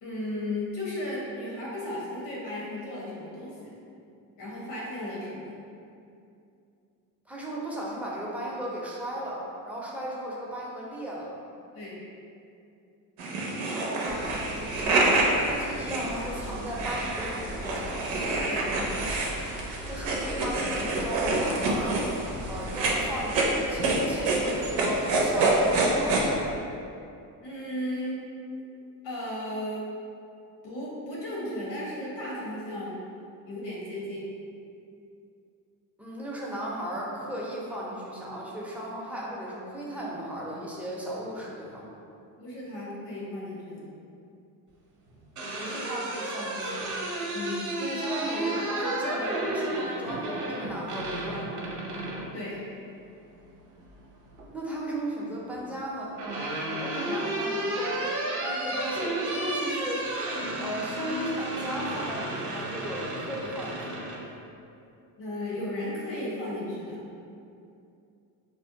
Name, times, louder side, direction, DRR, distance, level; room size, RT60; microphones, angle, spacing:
voice 1, 0.0-3.7 4.4-5.6 11.7-12.0 18.5-18.7 27.4-28.2 29.0-29.9 30.6-33.0 33.4-34.2 42.4-43.9 47.3-47.7 52.3-52.6 65.2-67.0, left 1 dB, 75° left, -5 dB, 1.1 m, -35 dB
voice 2, 7.3-11.3 13.7-18.1 19.9-22.0 22.5-26.4 36.0-41.8 45.5-46.9 47.8-51.5 54.5-56.1 56.8-58.1 58.4-60.1 60.6-64.1, right 1 dB, 5° right, -5 dB, 0.5 m, -36 dB
sound 1, 13.2-26.2, right 2 dB, 85° right, 0.6 m, -27 dB
sound 2, 14.1-26.6, left 1 dB, 45° left, 0.6 m, -41 dB
sound 3, 45.1-52.3 53.8-54.5 55.7-64.2, right 1 dB, 45° right, 0.7 m, -32 dB
2.5 x 2.0 x 3.8 m, 2.6 s
supercardioid pair, 75°, 42 cm